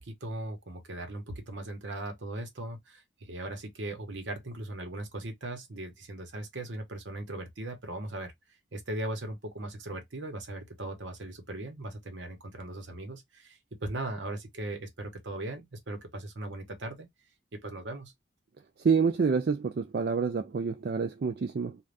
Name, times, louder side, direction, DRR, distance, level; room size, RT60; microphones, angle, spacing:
voice 1, 0.0-8.3 8.7-17.1 17.5-18.1, right 1 dB, 70° right, 1.0 m, -38 dB
voice 2, 18.8-21.8, right 5 dB, 50° right, 0.4 m, -27 dB
2.5 x 2.4 x 3.2 m
head